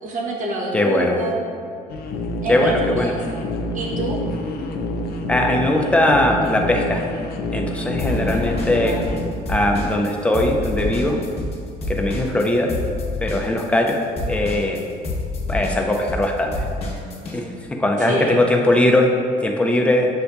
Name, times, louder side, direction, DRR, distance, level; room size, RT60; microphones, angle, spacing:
voice 1, 0.0-1.4 2.4-3.4 3.7-4.2 8.1-9.1 18.0-18.4, right 2 dB, 50° right, -3 dB, 0.9 m, -27 dB
voice 2, 0.7-1.1 2.5-3.1 5.3-7.0 7.5-8.9 9.5-11.2 11.9-12.7 13.2-14.0 14.3-14.8 15.5-16.5 17.3-17.5 17.8-19.1 19.4-20.1, left 1 dB, 5° left, 1 dB, 0.4 m, -19 dB
sound 1, 1.9-9.3, left 1 dB, 65° left, 0.4 m, -27 dB
sound 2, 8.0-9.2 9.5-17.4, left 2 dB, 35° left, 1.0 m, -27 dB
7.1 x 2.6 x 2.3 m, 2.3 s
cardioid pair, 110°, 17 cm